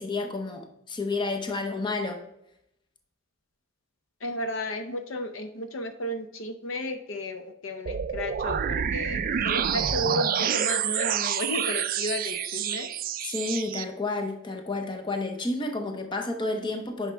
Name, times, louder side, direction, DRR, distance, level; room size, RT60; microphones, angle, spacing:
voice 1, 0.0-2.2 13.2-17.1, left 3 dB, 25° left, 4 dB, 0.7 m, -30 dB
voice 2, 4.2-12.9, left 1 dB, 70° left, 8 dB, 0.7 m, -33 dB
sound 1, 7.9-13.8, right 8 dB, 45° right, 0.3 m, -28 dB
9.3 x 5.6 x 3.4 m, 0.81 s
head